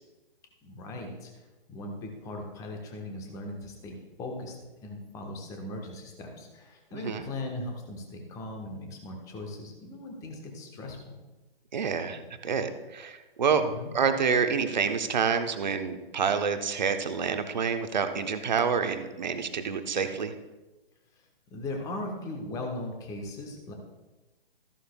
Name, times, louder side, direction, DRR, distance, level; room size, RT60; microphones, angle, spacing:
voice 1, 0.6-1.3 1.7-4.6 4.8-11.1 13.6-13.9 21.5-23.7, left 2 dB, 10° left, 2 dB, 1.1 m, -38 dB
voice 2, 11.7-13.6 13.9-20.3, right 6 dB, 50° right, 8 dB, 1.0 m, -28 dB
14.0 x 11.0 x 2.3 m, 1.1 s
figure-of-eight pair, 135°, 29 cm